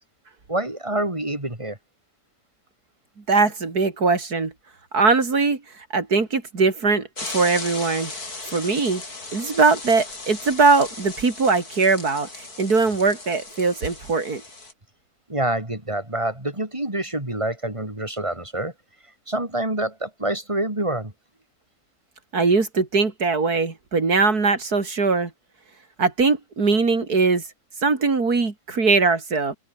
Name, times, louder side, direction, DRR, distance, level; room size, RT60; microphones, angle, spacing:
voice 1, 0.5-1.8 15.3-18.7 19.3-21.1, right 1 dB, 20° right, 5.1 m, -26 dB
voice 2, 3.3-4.5 4.9-5.6 5.9-8.1 8.5-9.0 9.3-14.4 22.3-25.3 26.0-27.4 27.8-29.6, right 4 dB, 90° right, 3.7 m, -21 dB
sound 1, 7.2-14.7, left 3 dB, 80° left, 5.3 m, -37 dB
open air
omnidirectional pair, 1.6 m